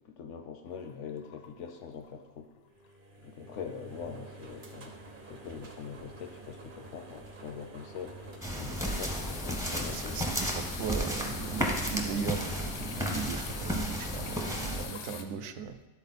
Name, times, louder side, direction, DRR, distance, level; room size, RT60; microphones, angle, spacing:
voice 1, 0.1-2.5 3.2-5.0 5.3-10.3, left 6 dB, 65° left, 5 dB, 0.7 m, -43 dB
sound 1, 0.7-2.3 2.6-2.9 3.2-3.3 7.9-15.2, left 7 dB, 85° left, 1.3 m, -45 dB
sound 2, 2.7-10.0, right 2 dB, 40° right, 0.8 m, -49 dB
sound 3, 8.4-14.9, equal, 5° right, 0.5 m, -33 dB
voice 2, 9.7-15.8, right 6 dB, 75° right, 8 dB, 0.6 m, -37 dB
11.5 x 4.2 x 4.1 m, 1.1 s
omnidirectional pair, 1.8 m